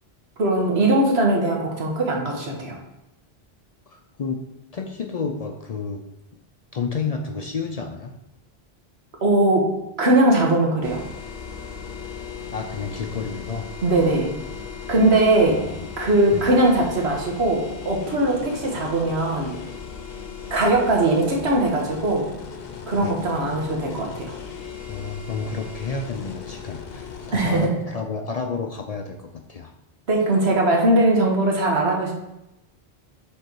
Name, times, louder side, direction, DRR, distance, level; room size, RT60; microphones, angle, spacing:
voice 1, 0.4-2.7 9.2-9.7 10.0-11.0 13.8-14.3 14.9-15.6 16.0-19.5 20.5-22.2 22.9-24.3 27.3-27.7 30.1-32.1, right 2 dB, 85° right, -1 dB, 1.5 m, -20 dB
voice 2, 3.9-4.4 4.7-6.0 6.7-8.1 12.5-13.7 15.5-15.9 16.3-16.5 23.0-23.2 24.9-29.7, left 5 dB, 50° left, 4 dB, 0.5 m, -31 dB
sound 1, 10.8-27.7, left 6 dB, 70° left, 1.0 m, -37 dB
7.7 x 3.3 x 4.5 m, 0.90 s
omnidirectional pair, 1.0 m